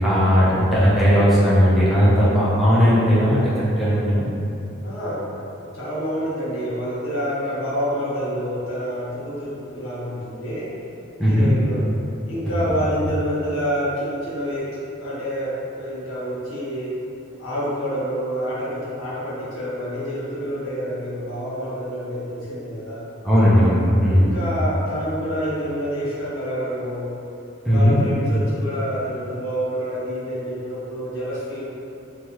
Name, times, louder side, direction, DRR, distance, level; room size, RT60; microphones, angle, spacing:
voice 1, 0.0-3.4 3.8-4.2 11.2-11.5 23.2-24.3 27.7-28.0, equal, ahead, -10 dB, 0.5 m, -17 dB
voice 2, 4.8-5.4 5.7-10.7 11.2-11.9 12.3-17.0 17.4-23.1 24.2-27.2 27.6-31.6, equal, 90° left, -8 dB, 0.9 m, -28 dB
3.1 x 2.3 x 2.9 m, 2.7 s
head